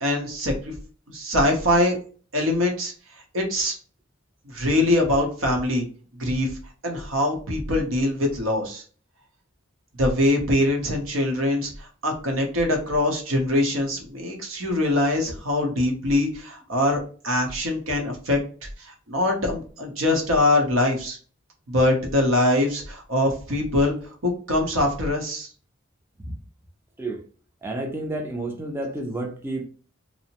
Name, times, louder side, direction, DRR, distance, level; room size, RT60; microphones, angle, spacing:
voice 1, 0.0-0.7 1.1-2.0 2.3-2.9 3.3-3.7 4.5-5.8 6.2-6.5 6.8-8.8 10.0-21.2 21.7-23.9 24.2-25.5, left 1 dB, 80° right, 2 dB, 0.8 m, -23 dB
voice 2, 27.6-29.7, right 2 dB, 10° right, 1 dB, 0.4 m, -30 dB
2.7 x 2.0 x 2.8 m, 0.40 s
head